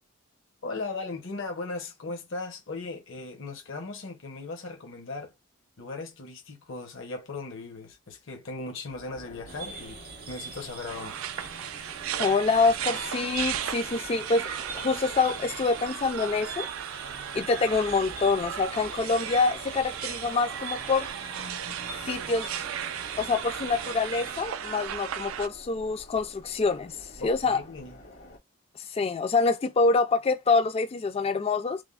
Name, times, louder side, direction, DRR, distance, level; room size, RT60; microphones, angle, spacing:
voice 1, 0.6-5.3 5.8-10.0 10.3-11.2 27.2-28.0, left 3 dB, 70° left, 0.9 m, -37 dB
sound 1, 8.9-28.4, equal, 85° left, 1.8 m, -50 dB
sound 2, 9.5-24.4, right 4 dB, 50° right, 0.7 m, -43 dB
sound 3, 10.9-25.5, right 9 dB, 85° right, 0.4 m, -36 dB
voice 2, 12.2-16.7 17.3-21.1 22.1-22.5 23.2-26.9 27.2-27.6 28.9-31.8, left 4 dB, 30° left, 0.3 m, -26 dB
3.3 x 2.0 x 2.4 m
head